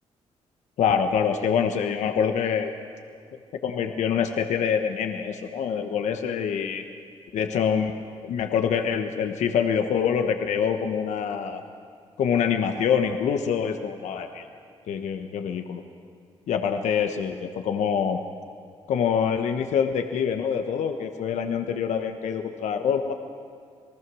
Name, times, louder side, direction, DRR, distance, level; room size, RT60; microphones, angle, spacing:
voice 1, 0.8-2.7 3.6-6.8 7.3-7.9 8.2-11.6 12.2-14.5 14.9-15.8 16.5-18.2 18.9-23.1, left 7 dB, 75° left, 6 dB, 1.2 m, -25 dB
27.5 x 19.5 x 6.3 m, 2.4 s
supercardioid pair, 65°, 12 cm